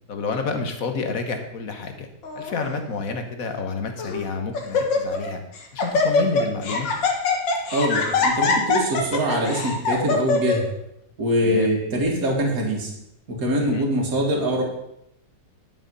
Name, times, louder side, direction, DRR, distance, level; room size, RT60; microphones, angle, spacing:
voice 1, 0.1-2.1 2.4-5.4 5.7-6.9 11.4-11.7 13.6-13.9, left 4 dB, 50° left, 6 dB, 1.7 m, -29 dB
Laughter, 2.2-2.6 3.4-3.5 4.0-4.3 4.5-5.3 5.6-10.6, left 4 dB, 85° left, 2.2 m, -23 dB
voice 2, 7.7-10.6 11.2-12.9 13.3-14.6, equal, 50° right, -1 dB, 2.5 m, -23 dB
11.0 x 7.5 x 5.5 m, 0.80 s
omnidirectional pair, 1.9 m